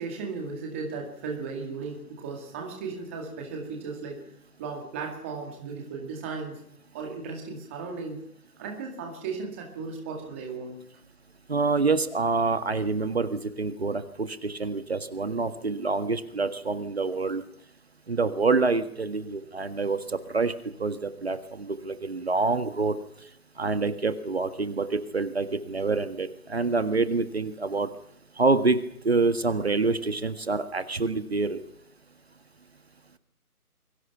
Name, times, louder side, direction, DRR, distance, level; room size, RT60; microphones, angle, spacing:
voice 1, 0.0-4.2 4.6-6.6 6.9-8.2 8.6-10.8, right 4 dB, 10° right, 1 dB, 2.0 m, -36 dB
voice 2, 11.5-17.4 18.1-20.0 20.3-20.5 20.8-23.0 23.6-27.9 28.4-31.6, right 3 dB, 45° right, 10 dB, 1.8 m, -26 dB
29.5 x 22.5 x 5.8 m, 0.72 s
figure-of-eight pair, 165°, 45 cm